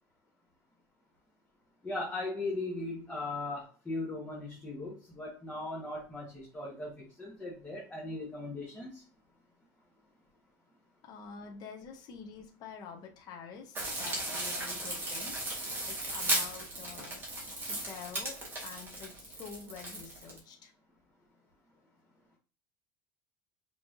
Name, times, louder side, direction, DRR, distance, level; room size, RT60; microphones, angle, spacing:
voice 1, 1.8-9.0, left 2 dB, 10° left, -6 dB, 1.3 m, -38 dB
voice 2, 11.0-15.4 15.9-17.2 17.5-18.4 18.6-20.7, left 6 dB, 40° left, 1 dB, 1.1 m, -47 dB
sound 1, 13.7-20.4, right 1 dB, 20° right, 1.7 m, -36 dB
5.5 x 3.2 x 2.6 m, 0.36 s
cardioid pair, 150°, 11 cm